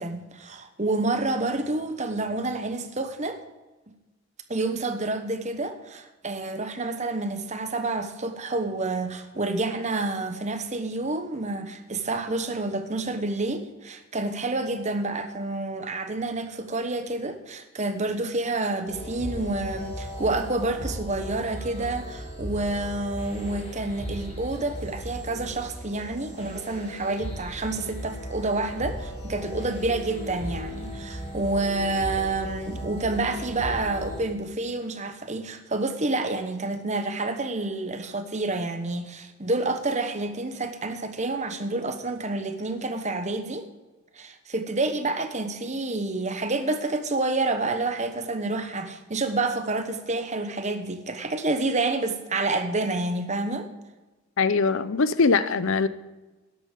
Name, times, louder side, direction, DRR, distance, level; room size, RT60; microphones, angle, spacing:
voice 1, 0.0-3.4 4.5-43.6 44.1-53.7, right 2 dB, 30° right, 8 dB, 1.1 m, -28 dB
sound 1, 18.9-34.3, equal, 25° left, 2.6 m, -36 dB
voice 2, 54.4-55.9, left 4 dB, 60° left, 14 dB, 0.6 m, -22 dB
13.0 x 10.5 x 5.1 m, 1.2 s
head